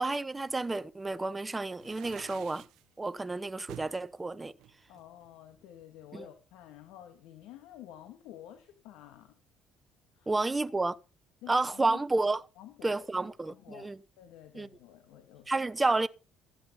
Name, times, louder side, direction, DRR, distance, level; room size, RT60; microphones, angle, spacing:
voice 1, 0.0-2.6 3.0-4.5 6.1-6.2 10.3-10.9 11.5-12.4 12.8-14.0 14.5-14.7 15.5-16.1, right 3 dB, 15° right, 1.0 m, -30 dB
sound 1, 1.7-2.8 3.7-4.0 4.6-5.7, right 14 dB, 75° right, 0.7 m, -49 dB
voice 2, 4.9-9.4 10.2-10.5 11.4-12.0 12.6-15.5, left 12 dB, 85° left, 2.1 m, -51 dB
15.0 x 8.6 x 5.6 m
cardioid pair, 100°, 0 cm